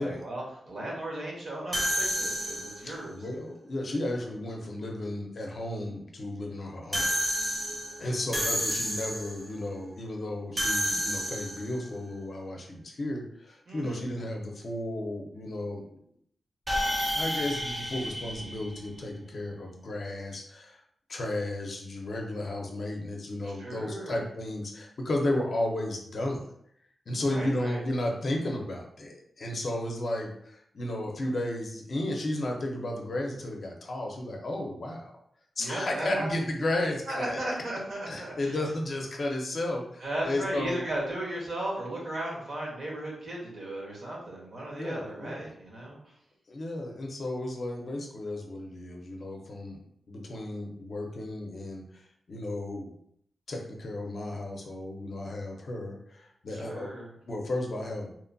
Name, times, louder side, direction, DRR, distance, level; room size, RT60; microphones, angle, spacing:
voice 1, 0.0-3.2 13.7-14.0 23.4-24.2 27.3-27.8 35.6-36.3 37.1-38.6 40.0-46.0 56.5-57.1, right 1 dB, 60° right, -4 dB, 1.0 m, -36 dB
sound 1, 1.7-3.0 6.9-9.4 10.6-11.8 16.7-19.2, equal, 15° right, 0.6 m, -30 dB
voice 2, 2.8-7.2 8.0-16.0 16.9-20.8 21.1-26.5 27.1-35.1 35.6-37.4 38.1-40.9 44.7-45.5 46.5-49.8 50.1-52.9 53.5-56.9 57.3-58.1, left 1 dB, 50° left, 1 dB, 0.5 m, -33 dB
2.8 x 2.2 x 2.5 m, 0.70 s
wide cardioid pair, 120°, 0 cm